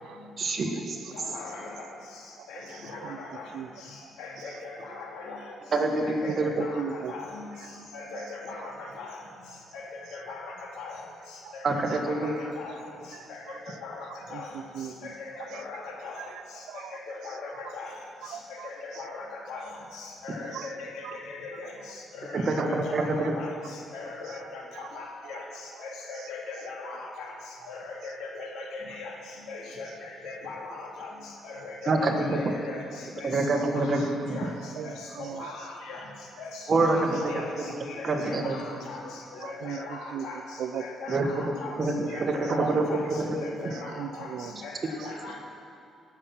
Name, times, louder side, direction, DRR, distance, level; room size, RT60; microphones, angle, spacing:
voice 1, 0.4-1.0 5.7-6.7 11.6-12.4 22.3-23.4 31.9-32.4 33.2-34.4 36.7-37.2 38.0-38.6 41.1-41.3 41.8-42.9 43.2-43.4, right 2 dB, 45° right, 3 dB, 1.7 m, -26 dB
voice 2, 1.1-1.7 2.5-2.6 3.0-3.4 4.2-5.4 6.0-6.8 7.1-7.4 7.9-9.1 9.7-9.8 10.1-10.5 10.8-11.0 11.7-12.3 12.6-12.8 13.5-14.0 14.3-14.5 15.2-16.2 16.9-17.9 18.6-19.7 19.9-20.9 21.3-21.7 22.3-23.5 23.9-25.4 25.8-27.3 27.7-29.1 29.5-31.1 31.4-32.8 33.2-33.3 33.7-34.0 34.3-34.5 34.8-36.0 36.4-36.5 36.9-37.5 37.9-39.0 39.4-40.4 40.8-41.7 42.1-43.0 43.6-44.3 44.6-44.8 45.0-45.4, left 4 dB, 90° left, -1 dB, 2.4 m, -39 dB
voice 3, 2.7-3.7 4.0-4.1 6.3-6.5 6.8-7.1 8.1-8.2 8.5-8.6 11.4-11.5 12.3-12.4 14.3-15.1 15.5-15.6 16.2-17.0 18.2-19.0 20.5-20.7 21.0-21.2 24.7-24.9 33.4-33.6 34.4-35.5 36.7-36.8 39.4-40.3 40.6-40.8 41.8-42.2 43.9-44.5 45.0-45.1, right 9 dB, 80° right, 11 dB, 0.6 m, -39 dB
17.5 x 7.4 x 5.9 m, 2.4 s
cardioid pair, 90°, 0 cm